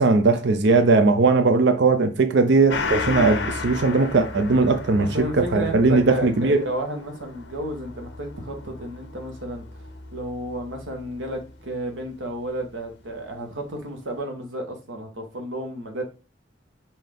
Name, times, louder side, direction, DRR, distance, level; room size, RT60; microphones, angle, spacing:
voice 1, 0.0-6.6, right 3 dB, 60° right, 0.5 m, -19 dB
Gong, 2.7-11.7 12.0-12.1, left 4 dB, 60° left, 0.7 m, -34 dB
voice 2, 5.0-9.6 10.1-16.0, right 1 dB, 80° right, 1.2 m, -32 dB
5.6 x 2.7 x 3.4 m
head